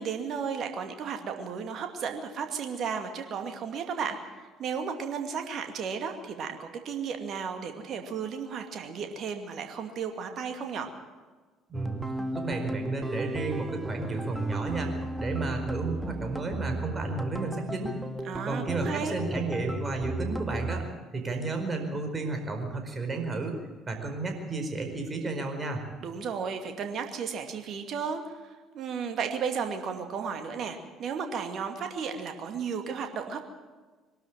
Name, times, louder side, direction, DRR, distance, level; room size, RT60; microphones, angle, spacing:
voice 1, 0.0-4.2 4.6-10.9 18.2-19.2 26.0-33.4, right 6 dB, 50° right, 6 dB, 2.4 m, -34 dB
sound 1, 11.7-20.8, right 1 dB, 10° right, 1.7 m, -35 dB
voice 2, 11.7-12.0 12.3-14.9 15.2-17.9 18.4-20.9 21.1-23.6 23.9-25.8, right 3 dB, 30° right, 4 dB, 4.7 m, -32 dB
22.5 x 12.5 x 9.2 m, 1.4 s
figure-of-eight pair, 55°, 0 cm